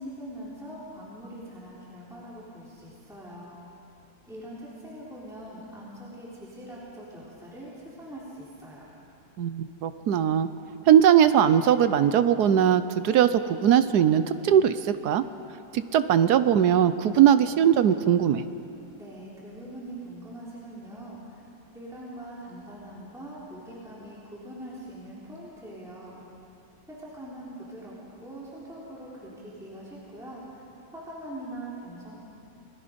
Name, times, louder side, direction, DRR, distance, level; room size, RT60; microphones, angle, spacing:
voice 1, 0.0-3.6 4.3-8.9 18.9-21.4 21.7-26.2 26.9-28.0 28.2-30.6 30.9-32.1, right 1 dB, ahead, -7 dB, 3.5 m, -42 dB
voice 2, 9.4-10.5 10.9-15.2 15.7-18.4, right 9 dB, 65° right, 12 dB, 1.1 m, -20 dB
28.5 x 20.0 x 5.2 m, 2.8 s
omnidirectional pair, 2.1 m